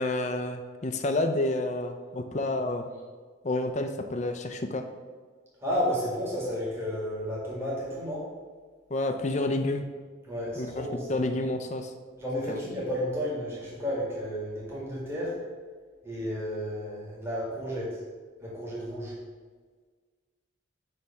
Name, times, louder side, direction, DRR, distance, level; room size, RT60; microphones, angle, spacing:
voice 1, 0.0-2.9 3.4-4.8 8.9-9.8 10.6-11.9 12.5-12.6, left 2 dB, 35° left, 7 dB, 0.5 m, -29 dB
voice 2, 5.6-8.2 10.3-11.2 12.2-15.3 16.0-18.0 18.4-19.1, equal, 15° right, -6 dB, 2.0 m, -32 dB
9.5 x 3.3 x 5.9 m, 1.5 s
head